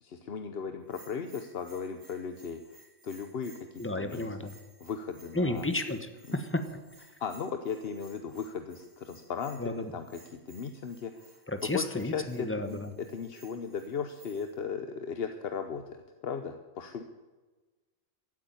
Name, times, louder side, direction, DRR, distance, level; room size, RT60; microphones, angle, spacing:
voice 1, 0.0-4.3 4.8-5.7 6.3-6.4 7.2-10.0 10.3-11.4 11.6-12.8 13.1-17.0, left 6 dB, 50° left, 8 dB, 0.9 m, -37 dB
Bell, 0.8-14.6, right 3 dB, 75° right, 5.4 m, -59 dB
voice 2, 3.8-4.5 5.3-6.6 9.6-9.9 11.5-12.9, left 1 dB, 10° left, 8 dB, 1.0 m, -32 dB
14.5 x 8.4 x 9.5 m, 1.2 s
omnidirectional pair, 1.5 m